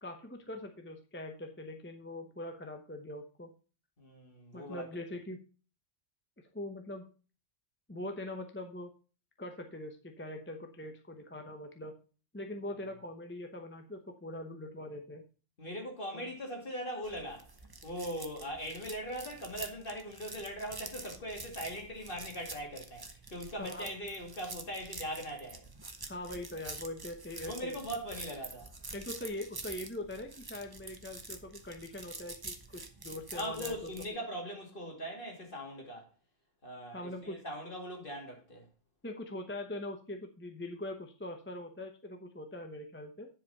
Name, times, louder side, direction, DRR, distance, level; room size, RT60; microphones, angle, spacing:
voice 1, 0.0-3.5 4.5-5.4 6.5-7.1 7.9-8.9 9.4-11.9 12.3-15.2 16.1-16.3 23.6-23.9 26.1-27.8 28.9-33.9 36.9-37.4 39.0-43.3, left 1 dB, 10° left, 0.8 m, -42 dB
voice 2, 4.0-4.9 15.6-17.5 17.8-25.6 27.4-28.7 33.3-36.1 36.6-38.7, equal, 45° left, 2.6 m, -40 dB
sound 1, 17.0-34.1, right 3 dB, 20° right, 0.8 m, -47 dB
10.0 x 5.0 x 5.5 m
omnidirectional pair, 1.3 m